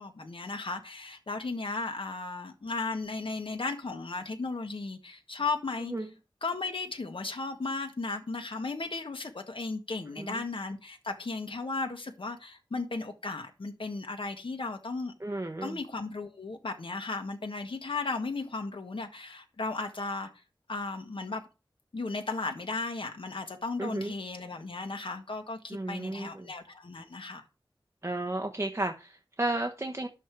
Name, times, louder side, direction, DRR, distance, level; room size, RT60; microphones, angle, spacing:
voice 1, 0.0-5.9 6.4-15.1 15.6-20.3 20.7-21.4 21.9-27.4, left 3 dB, 80° left, 1.5 m, -35 dB
voice 2, 15.2-15.8 23.8-24.1 25.7-26.5 28.0-30.1, right 2 dB, 30° right, 1.1 m, -33 dB
11.0 x 7.3 x 4.7 m
wide cardioid pair, 65°, 9 cm